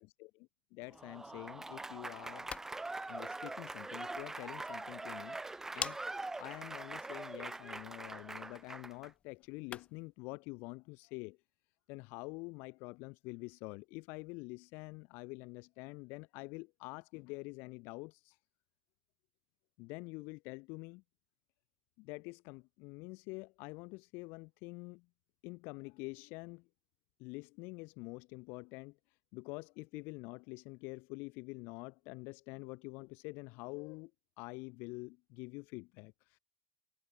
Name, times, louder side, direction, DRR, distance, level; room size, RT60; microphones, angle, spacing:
voice 1, 0.7-2.5 3.1-6.0 6.4-11.4 11.9-18.4 19.8-21.0 22.0-25.1 25.4-26.7 27.2-29.0 29.3-34.1 34.4-36.4, left 27 dB, 65° left, 3.7 m, -47 dB
Applause / Crowd, 0.9-9.1, right 2 dB, 10° right, 4.2 m, -43 dB
sound 1, 2.2-10.1, left 7 dB, 30° left, 4.9 m, -50 dB
hypercardioid pair, 90°, 4 cm